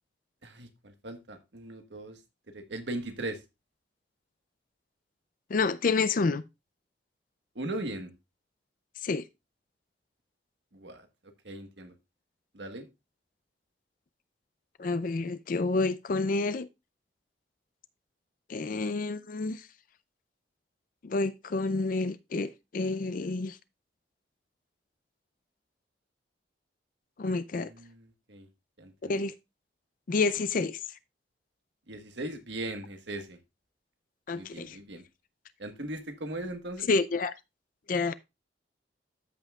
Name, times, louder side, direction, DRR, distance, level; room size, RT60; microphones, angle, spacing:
voice 1, 0.4-2.2 2.5-3.4 7.5-8.1 10.7-11.1 11.4-11.9 12.5-12.8 27.5-28.5 28.8-29.2 31.9-33.4 34.3-35.0 35.6-36.9, right 1 dB, 85° right, 1.4 m, -39 dB
voice 2, 5.5-6.4 9.0-9.2 14.8-16.7 18.5-19.6 21.0-23.6 27.2-27.7 29.1-29.3 30.1-30.8 34.3-34.8 36.9-37.3 37.9-38.1, left 3 dB, 50° left, 0.4 m, -29 dB
13.5 x 5.6 x 2.4 m
head